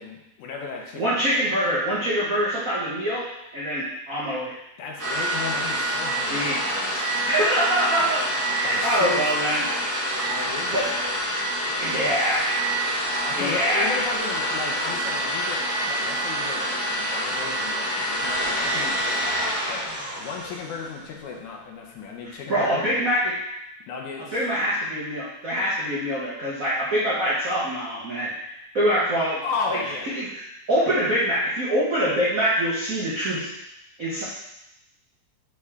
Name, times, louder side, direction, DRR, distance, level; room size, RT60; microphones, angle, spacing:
voice 1, 0.0-1.4 4.8-7.1 8.6-9.6 10.3-10.9 13.3-19.9 20.2-23.0 23.9-24.4 29.4-30.1, left 5 dB, 75° left, 0 dB, 2.3 m, -35 dB
voice 2, 0.9-3.2 3.5-4.5 6.3-6.6 7.1-9.6 10.4-10.9 11.8-12.6 13.1-13.9 22.2-23.3 24.3-28.5 28.7-29.4 30.1-30.3 30.7-33.5 34.0-34.2, equal, 70° right, -8 dB, 0.7 m, -24 dB
sound 1, 5.0-21.0, right 1 dB, 10° right, 0.9 m, -27 dB
6.6 x 4.9 x 3.6 m, 0.86 s
omnidirectional pair, 3.5 m